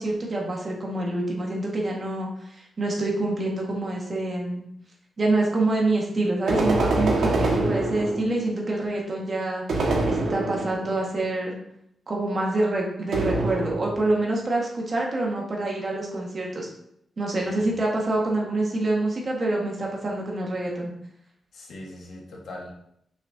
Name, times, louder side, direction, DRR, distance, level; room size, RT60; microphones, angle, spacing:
voice 1, 0.0-4.7 5.2-9.6 10.1-11.6 12.1-16.7 17.2-20.9, right 2 dB, 35° right, -2 dB, 1.8 m, -26 dB
sound 1, 6.5-8.4 9.7-10.9 13.1-14.1, right 2 dB, 80° right, 1.7 m, -25 dB
voice 2, 17.4-17.7 21.5-22.7, left 1 dB, 70° left, -2 dB, 1.7 m, -40 dB
6.8 x 6.2 x 2.9 m, 0.74 s
wide cardioid pair, 145°, 0 cm